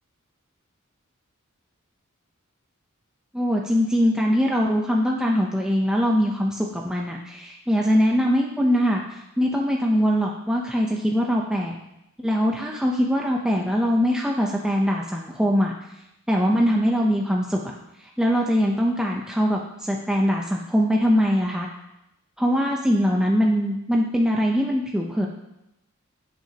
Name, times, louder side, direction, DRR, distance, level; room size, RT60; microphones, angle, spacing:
voice 1, 3.3-11.8 12.2-15.7 16.3-17.7 18.0-21.7 22.4-25.3, equal, 5° right, -1 dB, 0.7 m, -22 dB
16.5 x 6.1 x 2.9 m, 0.87 s
head